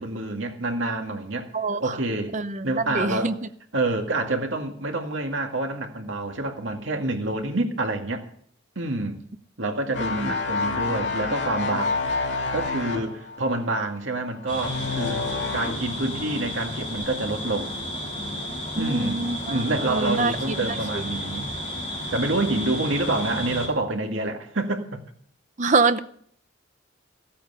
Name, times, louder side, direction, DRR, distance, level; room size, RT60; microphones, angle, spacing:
voice 1, 0.0-1.5 1.8-2.4 2.6-3.3 3.7-8.3 8.8-9.2 9.6-12.0 12.5-15.2 15.5-17.8 18.8-21.5 22.1-25.0, right 2 dB, 85° right, 2.0 m, -27 dB
voice 2, 1.5-2.0 2.3-3.3 10.0-10.3 18.8-21.0 25.6-26.0, right 3 dB, 40° right, 0.7 m, -25 dB
sound 1, 9.9-15.9 16.3-16.6, left 3 dB, 65° left, 2.5 m, -28 dB
sound 2, 14.5-23.7, equal, 30° left, 5.8 m, -32 dB
15.0 x 8.5 x 6.8 m
head